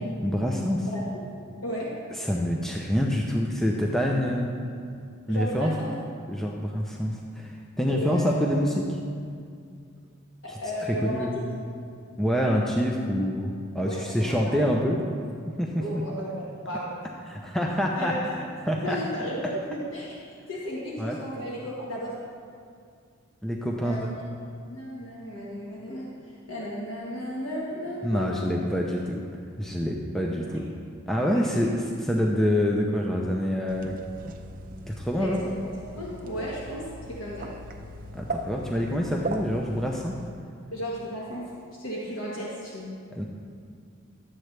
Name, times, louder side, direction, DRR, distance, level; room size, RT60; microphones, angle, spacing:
voice 1, 0.2-0.9 2.1-4.6 5.3-5.7 6.3-9.0 10.5-10.6 10.9-11.4 12.2-15.0 15.6-15.8 17.3-18.1 18.7-19.0 21.0-21.2 23.4-24.1 28.0-30.6 31.1-33.9 34.9-35.4 38.1-40.1 43.1-43.2, equal, ahead, -1 dB, 0.5 m, -26 dB
voice 2, 0.8-1.3 1.6-1.9 5.3-5.9 7.9-8.4 10.4-11.3 13.8-14.7 15.8-16.9 17.9-18.4 18.8-22.2 23.7-24.3 24.7-26.1 26.5-28.5 30.5-30.6 31.3-31.5 35.2-35.5 36.0-37.5 40.7-41.5 41.8-42.9, equal, 70° left, -5 dB, 1.4 m, -34 dB
sound 1, 33.7-40.3, right 1 dB, 40° right, 0.6 m, -38 dB
12.0 x 7.7 x 3.2 m, 2.3 s
head